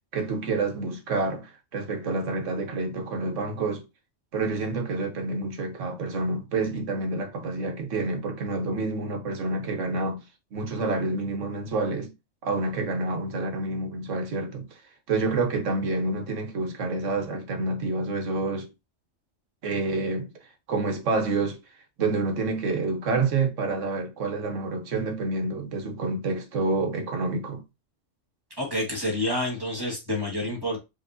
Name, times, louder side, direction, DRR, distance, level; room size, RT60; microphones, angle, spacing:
voice 1, 0.1-3.8 4.3-10.2 10.5-12.1 12.4-14.7 15.1-18.7 19.6-20.3 20.7-21.6 22.0-27.6, right 3 dB, 75° right, 1.3 m, -28 dB
voice 2, 28.6-30.8, left 1 dB, 20° right, 1.4 m, -28 dB
5.1 x 3.0 x 2.6 m
omnidirectional pair, 1.3 m